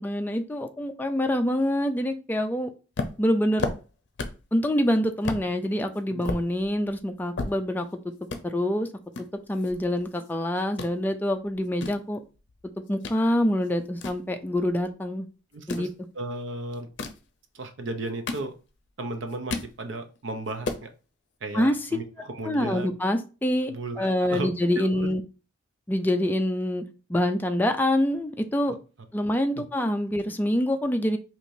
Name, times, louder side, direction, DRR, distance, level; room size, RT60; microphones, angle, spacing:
voice 1, 0.0-2.7 3.2-3.7 4.5-7.9 8.4-8.9 9.5-12.2 12.9-15.3 15.7-15.9 21.5-21.8 22.4-25.2 25.9-26.8 27.1-28.8 29.1-31.2, left 1 dB, 10° left, 6 dB, 0.3 m, -25 dB
sound 1, 2.9-4.5 4.8-4.9 5.2-5.5 5.9-7.9 8.2-8.4 9.1-10.3 10.6-10.9 11.5-13.2 13.6-14.9 15.5-15.9 16.8-17.3 17.9-18.9 19.2-19.8 20.2-20.3 20.5-20.9, left 3 dB, 65° left, 0.6 m, -34 dB
voice 2, 15.5-15.9 16.1-16.9 17.5-18.5 19.0-20.9 21.4-22.9 23.6-24.5 24.8-25.1 28.7-28.8 29.6-29.7, right 2 dB, 75° right, 7 dB, 0.6 m, -35 dB
4.6 x 2.9 x 2.6 m, 0.33 s
head